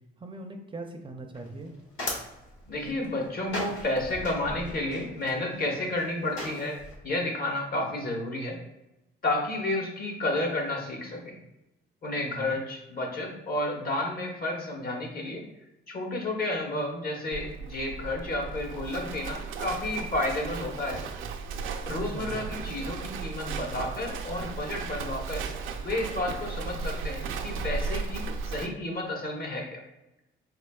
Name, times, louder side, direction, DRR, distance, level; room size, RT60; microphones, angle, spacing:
voice 1, 0.2-1.7 12.2-12.6 22.1-22.4, right 2 dB, 25° right, 3 dB, 0.5 m, -40 dB
sound 1, 1.3-7.0, left 1 dB, 85° left, 1.2 m, -39 dB
voice 2, 2.7-6.8 7.0-8.6 9.2-11.4 12.0-15.4 15.9-21.0 21.9-25.5 25.8-29.8, left 2 dB, 50° left, 1 dB, 1.1 m, -31 dB
Livestock farm animals working animals, 17.3-28.7, right 5 dB, 85° right, 0.5 m, -35 dB
4.3 x 3.3 x 2.3 m, 0.96 s
cardioid pair, 90°, 20 cm